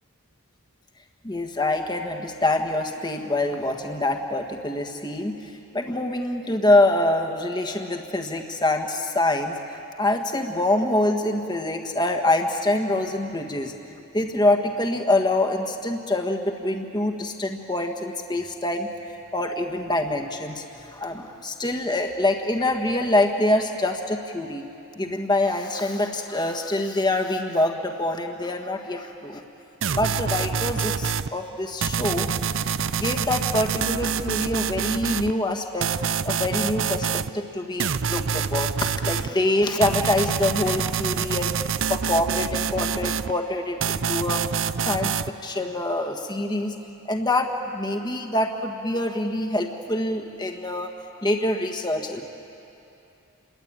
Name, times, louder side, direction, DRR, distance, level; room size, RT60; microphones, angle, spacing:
voice 1, 1.2-9.6 10.0-13.7 14.1-18.9 19.3-24.6 25.0-29.4 29.9-32.3 33.0-41.6 41.9-44.4 44.8-46.7 47.1-50.9 51.2-52.3, left 1 dB, 20° left, 4 dB, 1.5 m, -25 dB
sound 1, 29.8-31.3 31.8-35.3 35.8-37.3 37.8-39.3 39.8-43.3 43.8-45.3, right 7 dB, 55° right, 0.6 m, -26 dB
29.0 x 22.5 x 8.9 m, 2.9 s
head